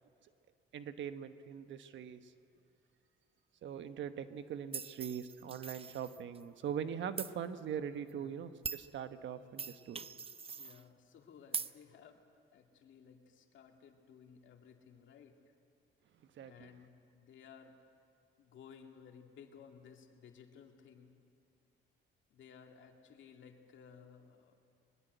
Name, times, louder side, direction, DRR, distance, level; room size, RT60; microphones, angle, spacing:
voice 1, 0.7-2.3 3.6-10.0 16.4-16.7, right 8 dB, 70° right, 10 dB, 1.2 m, -42 dB
sound 1, 4.7-6.4 7.2-7.3 8.1-8.2 8.6-8.9 9.6-10.8 11.5-11.7, right 5 dB, 30° right, 0.6 m, -42 dB
voice 2, 10.5-12.2 12.5-15.4 16.4-17.8 18.4-21.2 22.3-24.6, left 7 dB, 75° left, 3 dB, 2.4 m, -57 dB
22.0 x 21.5 x 8.0 m, 2.4 s
cardioid pair, 90°, 20 cm